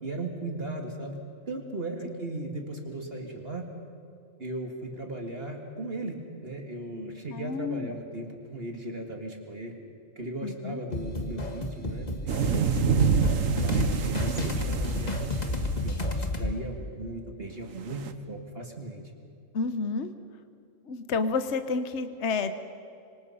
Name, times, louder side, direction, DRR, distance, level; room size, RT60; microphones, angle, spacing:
voice 1, 0.0-1.2 1.5-3.7 4.4-9.7 10.2-13.0 13.6-15.6 15.8-19.0, right 2 dB, 45° right, 3 dB, 2.2 m, -37 dB
voice 2, 7.3-8.0 10.4-10.8 16.4-16.5 19.5-20.1 20.8-22.5, left 4 dB, 55° left, 9 dB, 1.3 m, -30 dB
sound 1, 10.9-16.5, left 2 dB, 30° left, 1.7 m, -31 dB
sound 2, 12.3-15.9 17.9-18.1, right 6 dB, 70° right, 1.4 m, -27 dB
26.0 x 25.5 x 5.6 m, 2.6 s
omnidirectional pair, 1.5 m